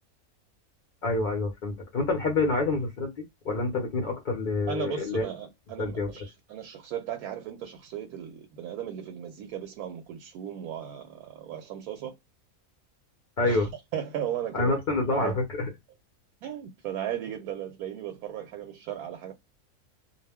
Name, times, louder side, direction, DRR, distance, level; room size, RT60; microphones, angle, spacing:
voice 1, 1.0-3.1 3.4-5.3 5.8-6.1 13.4-13.7 14.5-15.7, left 3 dB, 45° left, 0.7 m, -27 dB
voice 2, 4.7-12.1 13.4-13.7 13.9-14.7 15.1-15.4 16.4-19.3, right 10 dB, 85° right, 1.1 m, -36 dB
2.4 x 2.1 x 3.4 m
omnidirectional pair, 1.5 m